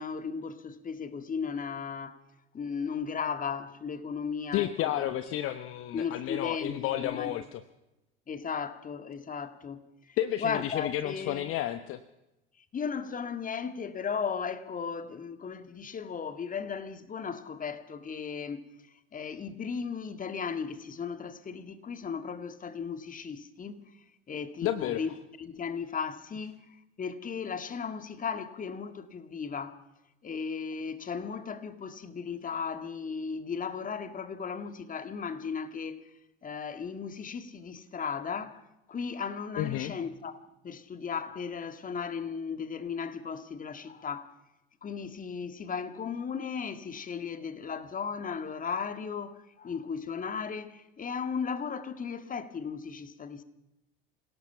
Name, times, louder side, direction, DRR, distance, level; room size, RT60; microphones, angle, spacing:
voice 1, 0.0-2.2 2.5-5.1 5.9-7.4 8.3-11.5 12.7-18.7 19.1-26.6 27.0-29.8 30.2-36.1 36.4-38.6 38.9-40.3 40.6-44.3 44.8-53.4, left 6 dB, 25° left, 2.0 m, -36 dB
voice 2, 4.5-7.6 10.2-12.0 24.6-25.0 39.6-39.9, left 13 dB, 45° left, 1.1 m, -31 dB
27.5 x 18.0 x 5.8 m
figure-of-eight pair, 70°, 29 cm